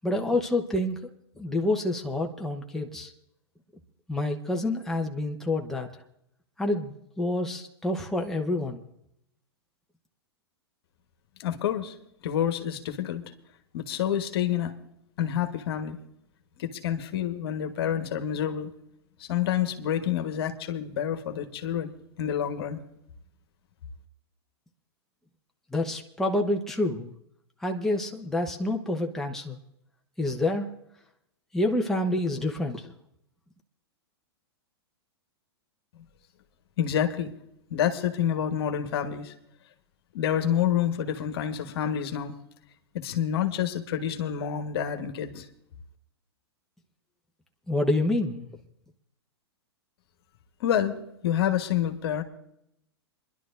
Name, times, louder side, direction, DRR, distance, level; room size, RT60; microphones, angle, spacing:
voice 1, 0.0-1.0 1.4-3.1 4.1-5.9 6.6-8.8 25.7-27.1 27.6-29.6 30.2-30.7 31.5-32.9 47.7-48.5, left 1 dB, 5° left, 1 dB, 1.0 m, -28 dB
voice 2, 11.4-11.9 12.2-13.2 13.7-14.7 15.2-16.0 16.6-18.7 19.2-22.8 36.8-37.3 37.7-39.3 40.1-42.4 42.9-45.4 50.6-51.0 51.2-52.2, left 9 dB, 65° left, 6 dB, 1.4 m, -28 dB
28.5 x 11.0 x 2.6 m, 0.77 s
hypercardioid pair, 110°, 14 cm